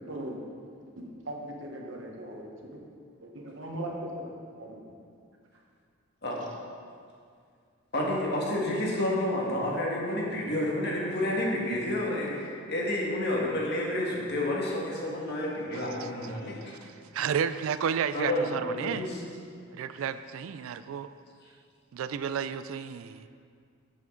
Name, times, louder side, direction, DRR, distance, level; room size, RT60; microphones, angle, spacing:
voice 1, 0.1-0.4 1.0-2.9 3.2-4.9, right 1 dB, 65° right, 0 dB, 1.1 m, -39 dB
voice 2, 7.9-16.8 18.1-19.1, left 1 dB, 50° left, -3 dB, 1.7 m, -30 dB
voice 3, 15.7-16.3 16.6-19.1 19.7-21.1 21.9-23.3, right 7 dB, 80° right, 12 dB, 0.3 m, -32 dB
9.4 x 7.2 x 3.8 m, 2.2 s
head